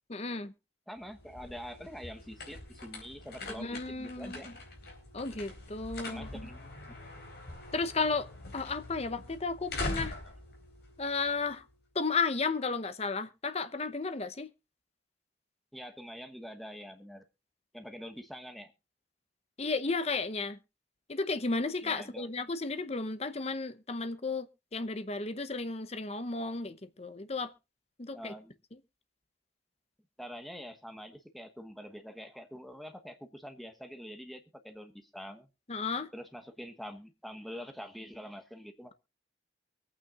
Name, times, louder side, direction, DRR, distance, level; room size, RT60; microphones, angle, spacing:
voice 1, 0.1-0.5 3.6-4.4 5.1-6.3 7.7-8.3 8.5-10.1 11.0-11.6 11.9-14.5 19.6-20.6 21.1-24.5 24.7-27.5 28.0-28.3 35.7-36.1, left 4 dB, 35° left, 0.8 m, -33 dB
voice 2, 0.9-4.5 6.0-7.3 15.7-17.2 17.7-18.7 21.8-22.3 28.1-28.6 30.2-35.5 36.1-38.9, equal, ahead, 1.1 m, -45 dB
sound 1, 1.0-11.7, left 2 dB, 55° left, 4.2 m, -43 dB
23.5 x 8.8 x 2.5 m
head